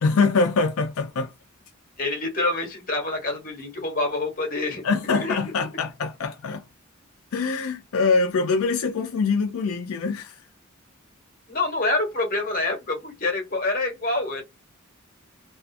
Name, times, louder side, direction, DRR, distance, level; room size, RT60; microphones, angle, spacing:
voice 1, 0.0-1.3 4.8-6.6 7.3-10.4, left 4 dB, 90° left, 0.4 m, -24 dB
voice 2, 2.0-4.8 5.1-5.4 11.5-14.4, left 2 dB, 45° left, 0.9 m, -26 dB
2.4 x 2.3 x 2.4 m
head